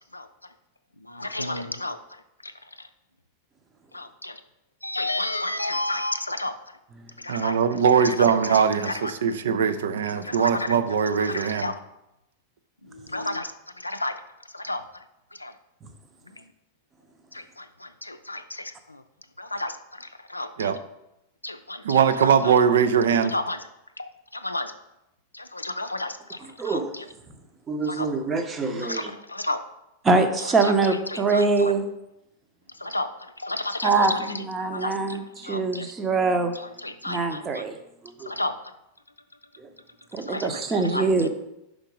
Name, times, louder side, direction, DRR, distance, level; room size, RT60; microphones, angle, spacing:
voice 1, 1.1-2.0 3.9-4.3 4.8-6.5 7.2-7.6 8.5-9.1 10.2-10.7 11.2-11.7 12.9-13.5 13.8-14.2 14.5-14.8 15.4-15.5 17.3-19.0 19.4-19.8 20.3-20.7 21.4-22.3 23.3-23.6 24.0-24.7 25.3-26.4 26.6-27.0 27.9-28.1 28.6-29.6 30.6-30.7 31.1-31.7 32.8-33.1 33.4-34.2 34.6-34.9 35.4-35.9 36.6-37.6 38.3-38.5 40.3-40.5 40.9-41.0, left 2 dB, 85° left, 9 dB, 0.4 m, -31 dB
voice 2, 7.3-11.7 20.6-20.8 21.8-23.3, right 7 dB, 60° right, 10 dB, 0.4 m, -21 dB
voice 3, 26.4-26.9 27.7-29.1 30.0-31.8 33.8-36.5 37.0-37.8 38.0-38.3 39.6-39.7 40.1-41.3, right 3 dB, 20° right, 7 dB, 0.7 m, -24 dB
5.1 x 4.5 x 5.1 m, 0.88 s
figure-of-eight pair, 90°, 0 cm